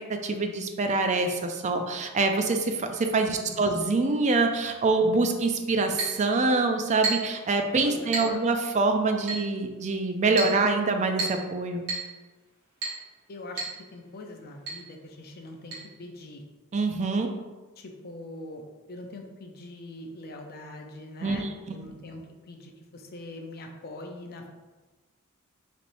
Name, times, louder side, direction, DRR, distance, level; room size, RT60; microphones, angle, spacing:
voice 1, 0.1-11.9 16.7-17.3 21.2-21.9, right 3 dB, 35° right, 5 dB, 0.4 m, -25 dB
voice 2, 3.3-3.8 7.8-8.6 13.3-13.6 13.9-16.4 17.8-24.5, left 2 dB, 45° left, 2 dB, 0.5 m, -42 dB
Chink clink, 6.0-6.2 7.0-7.4 8.1-8.4 9.3-9.5 10.4-10.6 11.2-11.5 11.9-12.1 12.8-13.0 13.6-13.8 14.0-14.1 14.7-14.8 15.7-15.8, right 3 dB, 55° right, 1.3 m, -31 dB
4.1 x 3.3 x 2.5 m, 1.2 s
head